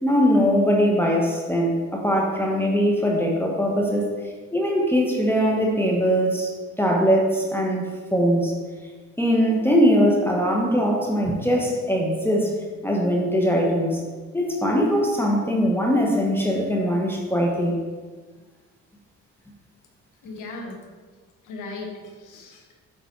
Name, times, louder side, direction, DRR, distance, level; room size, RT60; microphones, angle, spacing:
voice 1, 0.0-4.1 4.5-6.5 6.8-8.5 9.2-12.5 12.8-14.0 14.3-17.8, equal, 5° left, -2 dB, 1.2 m, -21 dB
voice 2, 20.2-20.8 21.4-22.8, left 3 dB, 90° left, 2 dB, 1.3 m, -37 dB
8.4 x 4.0 x 4.6 m, 1.4 s
cardioid pair, 90°, 30 cm